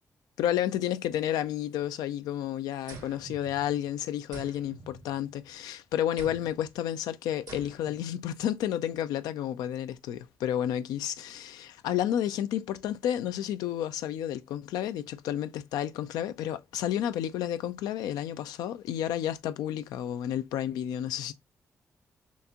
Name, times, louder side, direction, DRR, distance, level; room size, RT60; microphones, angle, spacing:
voice 1, 0.4-21.3, left 11 dB, 90° left, 0.4 m, -31 dB
sound 1, 2.9-3.9 4.3-5.6 6.2-6.7 7.5-8.1, right 3 dB, 80° right, 1.3 m, -47 dB
4.4 x 2.7 x 2.8 m
supercardioid pair, 50°, 7 cm